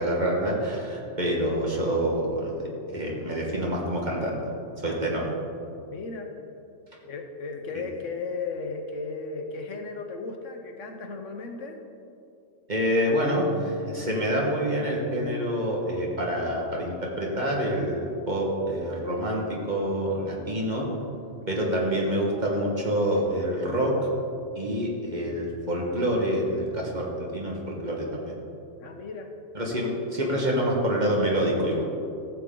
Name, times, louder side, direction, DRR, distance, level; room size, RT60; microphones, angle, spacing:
voice 1, 0.0-2.5 2.9-4.4 4.8-5.2 12.7-18.0 18.3-20.9 21.5-23.9 24.5-28.3 29.5-31.8, equal, 40° right, -2 dB, 1.6 m, -27 dB
voice 2, 4.9-5.3 5.9-6.3 7.0-11.8 21.4-21.7 28.8-29.3, left 4 dB, 80° left, 4 dB, 1.3 m, -36 dB
14.0 x 7.5 x 3.8 m, 2.6 s
omnidirectional pair, 1.3 m